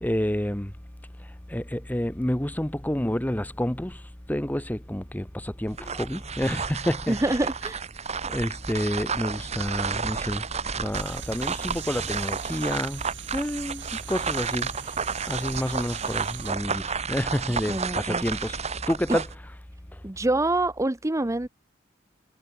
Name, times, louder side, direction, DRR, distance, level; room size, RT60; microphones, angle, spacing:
voice 1, 0.0-0.7 1.5-4.0 4.3-7.2 8.3-10.4 10.7-13.0 13.3-14.7 15.3-18.6 18.9-19.3, equal, 10° left, 1.1 m, -29 dB
sound 1, 5.7-19.4, right 6 dB, 35° right, 1.3 m, -32 dB
voice 2, 7.1-7.8 17.7-18.2 20.0-21.5, right 2 dB, 15° right, 0.7 m, -26 dB
sound 2, 10.9-16.5, right 10 dB, 65° right, 3.5 m, -43 dB
head